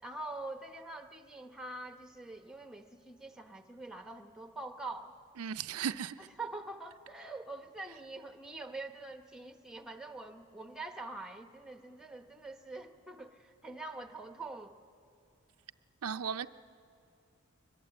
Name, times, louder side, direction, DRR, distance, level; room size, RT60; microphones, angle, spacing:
voice 1, 0.0-5.2 6.2-14.7, right 2 dB, 5° right, 0.9 m, -44 dB
voice 2, 5.4-6.2 16.0-16.5, right 7 dB, 85° right, 0.5 m, -35 dB
23.5 x 21.0 x 7.8 m
head